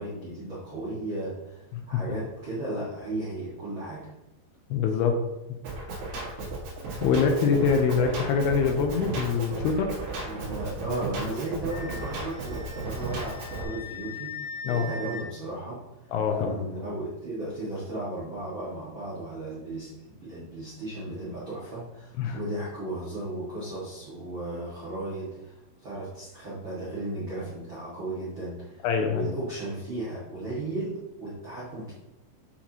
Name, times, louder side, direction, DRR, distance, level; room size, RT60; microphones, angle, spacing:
voice 1, 0.0-4.1 10.2-14.3 14.6-15.8 16.3-31.9, right 2 dB, 85° right, -9 dB, 1.1 m, -35 dB
voice 2, 4.7-5.2 7.0-9.9 14.6-14.9 16.1-16.5 22.2-22.4 28.8-29.3, left 5 dB, 85° left, 4 dB, 2.4 m, -24 dB
Drum kit, 5.6-13.6, right 2 dB, 65° right, 3.4 m, -35 dB
Wind instrument woodwind instrument, 11.7-15.2, left 3 dB, 50° left, 2.5 m, -40 dB
8.5 x 5.7 x 2.9 m, 1.0 s
omnidirectional pair, 5.4 m